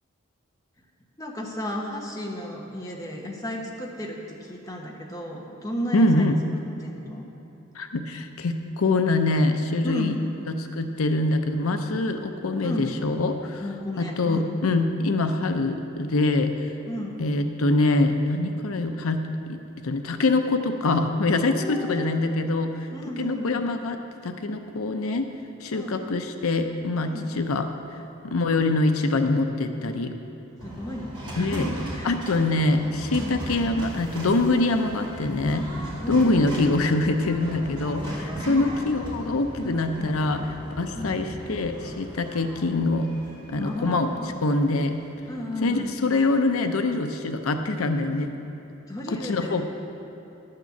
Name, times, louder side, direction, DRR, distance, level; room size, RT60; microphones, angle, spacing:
voice 1, 1.2-6.3 6.8-7.3 9.8-10.1 12.6-12.9 13.6-14.5 16.9-17.2 21.4-22.1 22.9-23.6 25.7-26.1 27.0-27.2 30.6-32.4 33.1-33.4 36.0-36.5 38.4-38.8 39.6-39.8 41.0-41.2 43.5-44.3 45.3-46.0 48.9-49.6, equal, 15° left, -1 dB, 1.1 m, -34 dB
voice 2, 5.9-6.4 7.8-10.2 10.5-13.6 14.0-16.5 17.2-19.2 19.5-22.9 23.2-24.0 24.2-25.3 25.6-27.7 28.2-30.1 31.4-31.7 32.0-35.7 36.1-43.1 43.5-44.1 44.4-44.9 45.6-48.3 49.1-49.6, left 2 dB, 90° left, 6 dB, 0.6 m, -24 dB
sound 1, 30.6-46.8, right 1 dB, 25° right, 2.5 m, -38 dB
11.0 x 6.6 x 7.2 m, 3.0 s
head